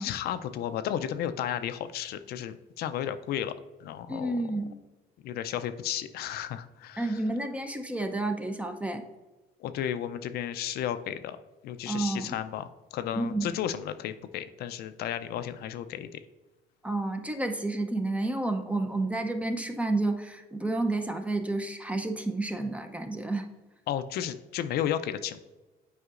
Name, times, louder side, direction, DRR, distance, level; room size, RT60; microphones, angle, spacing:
voice 1, 0.0-3.5 3.8-4.3 5.2-7.2 9.6-11.4 11.6-16.2 23.9-25.4, left 10 dB, 70° left, 11 dB, 0.4 m, -33 dB
voice 2, 4.1-4.8 7.0-9.0 11.9-12.4 13.1-13.5 16.8-23.5, right 2 dB, 10° right, 6 dB, 0.6 m, -30 dB
8.0 x 4.9 x 2.4 m, 1.2 s
cardioid pair, 110°, 17 cm